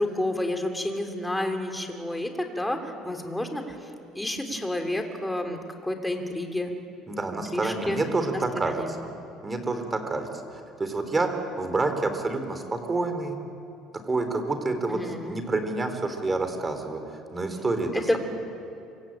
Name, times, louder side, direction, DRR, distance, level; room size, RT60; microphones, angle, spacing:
voice 1, 0.0-3.7 4.1-6.7 7.3-8.0 8.7-8.9 14.9-15.4 18.1-18.2, left 1 dB, 5° left, 5 dB, 3.4 m, -30 dB
voice 2, 7.1-9.0 9.4-13.4 14.1-18.2, right 3 dB, 20° right, 7 dB, 3.8 m, -28 dB
27.0 x 24.0 x 9.0 m, 2.6 s
cardioid pair, 130°, 0 cm